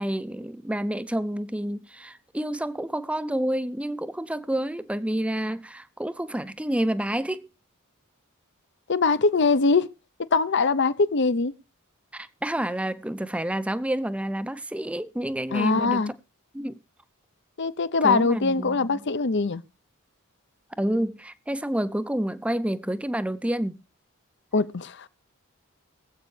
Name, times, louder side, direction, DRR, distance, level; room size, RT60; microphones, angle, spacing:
voice 1, 0.0-7.5 12.1-16.0 16.5-16.8 18.0-19.0 20.8-23.8, right 1 dB, 5° right, 0.5 m, -29 dB
voice 2, 8.9-9.9 10.2-11.5 15.5-16.1 17.6-19.6 24.5-25.1, left 4 dB, 55° left, 0.7 m, -22 dB
23.5 x 8.0 x 3.2 m
head